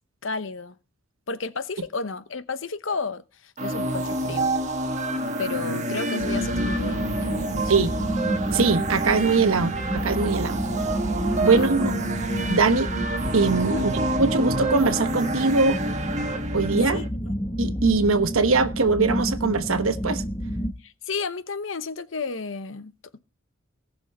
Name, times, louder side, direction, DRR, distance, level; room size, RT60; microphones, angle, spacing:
voice 1, 0.2-0.8 1.3-4.6 5.4-7.9 11.4-11.6 13.6-13.8 16.9-17.3 20.8-22.9, left 4 dB, 65° left, 1.0 m, -32 dB
sound 1, 3.6-17.1, right 2 dB, 35° right, 1.4 m, -28 dB
sound 2, 6.2-20.7, equal, 15° left, 1.3 m, -30 dB
voice 2, 8.5-10.6 11.4-11.9 12.5-12.9 13.3-15.8 16.5-17.0 17.6-20.2, right 4 dB, 90° right, 1.1 m, -22 dB
18.5 x 6.3 x 4.2 m
head